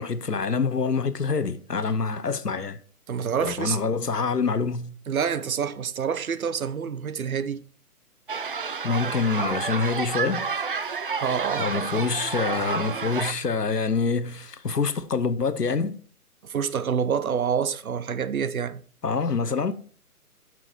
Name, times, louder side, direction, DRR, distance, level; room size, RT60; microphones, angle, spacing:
voice 1, 0.0-2.8 3.4-5.0 8.8-10.5 11.6-16.0 19.0-19.7, left 4 dB, 90° left, 1.0 m, -26 dB
voice 2, 3.1-3.8 5.1-7.6 11.1-12.1 16.4-18.8, right 7 dB, 65° right, 0.8 m, -27 dB
sound 1, 8.3-13.3, right 5 dB, 35° right, 0.5 m, -30 dB
9.4 x 6.2 x 4.6 m
figure-of-eight pair, 135°, 46 cm